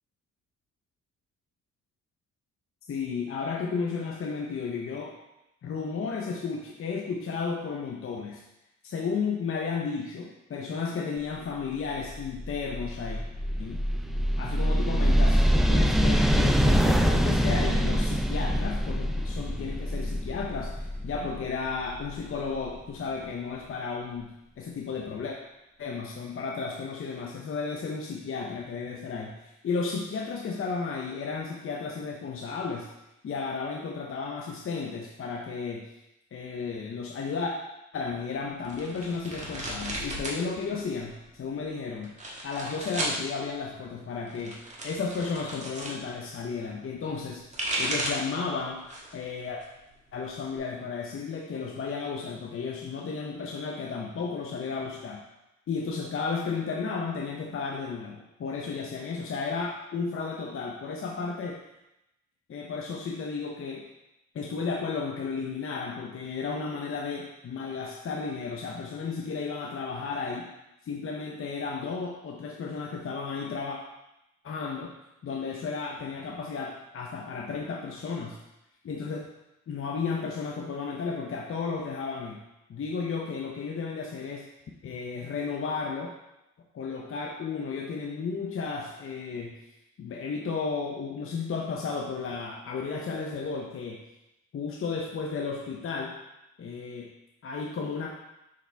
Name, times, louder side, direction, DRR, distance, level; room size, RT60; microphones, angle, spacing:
voice 1, 2.9-5.1 5.6-8.4 8.8-13.2 13.6-13.8 14.4-25.4 25.8-32.9 33.2-35.9 36.3-37.5 37.9-42.1 42.4-44.6 44.8-47.4 47.8-48.8 49.1-49.6 50.1-55.2 55.7-61.6 62.5-63.9 64.3-70.5 70.8-73.8 74.4-74.9 75.2-78.4 78.8-79.3 79.7-82.4 82.7-84.5 84.8-86.1 86.7-89.6 90.0-94.0 94.5-96.2 96.6-97.1 97.4-98.1, left 5 dB, 45° left, -1 dB, 0.8 m, -33 dB
sound 1, 11.9-22.7, equal, ahead, 0.3 m, -25 dB
sound 2, 38.6-40.4 40.7-41.4 42.0-43.2 44.2-46.0 47.2-48.3 48.8-49.2 49.6-50.6, right 1 dB, 25° right, 1.5 m, -34 dB
5.8 x 5.0 x 3.4 m, 0.90 s
cardioid pair, 90°, 30 cm